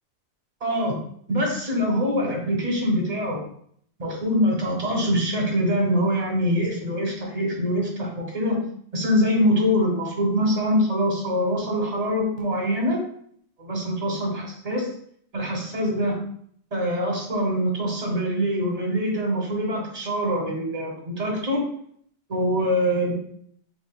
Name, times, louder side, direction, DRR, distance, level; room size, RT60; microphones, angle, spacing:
voice 1, 0.6-1.0 1.3-3.4 4.0-8.6 8.9-13.0 13.6-14.9 15.3-16.2 16.7-21.6 22.3-23.1, equal, 35° right, 0 dB, 0.9 m, -24 dB
3.5 x 3.4 x 2.4 m, 0.63 s
omnidirectional pair, 1.3 m